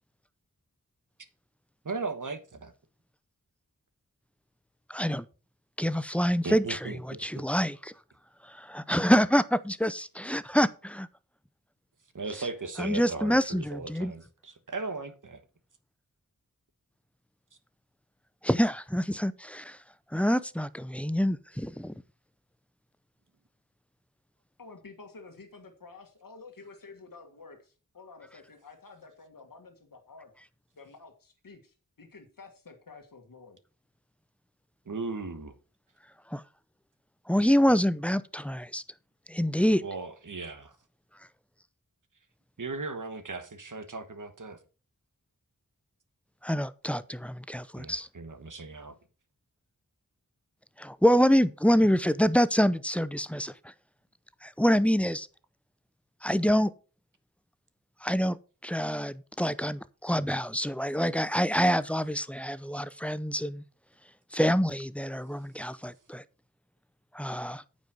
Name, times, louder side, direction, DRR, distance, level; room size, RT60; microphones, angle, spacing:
voice 1, 1.8-2.7 6.4-7.4 12.1-15.4 34.8-35.6 39.8-40.8 42.6-44.6 47.8-49.0, right 3 dB, 65° right, 1.4 m, -37 dB
voice 2, 4.9-5.2 5.8-6.9 7.2-7.9 8.4-11.1 12.8-14.1 18.4-19.8 20.1-21.9 36.3-36.4 37.3-38.8 39.3-39.8 46.4-48.1 50.8-53.7 54.4-55.3 56.2-56.7 58.0-58.4 58.6-63.6 64.3-66.2 67.1-67.6, equal, 5° left, 0.6 m, -26 dB
voice 3, 24.6-30.3 30.8-33.6, left 4 dB, 75° left, 1.7 m, -50 dB
9.1 x 5.4 x 6.2 m
wide cardioid pair, 60°, 33 cm